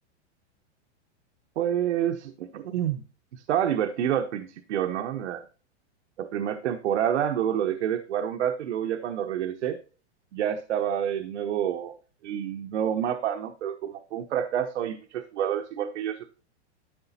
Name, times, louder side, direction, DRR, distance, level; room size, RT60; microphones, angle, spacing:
voice 1, 1.6-3.0 3.3-5.5 6.2-9.8 10.3-12.0 12.2-16.3, right 9 dB, 80° right, 7 dB, 1.0 m, -28 dB
12.5 x 5.8 x 4.2 m, 0.37 s
supercardioid pair, 170°, 34 cm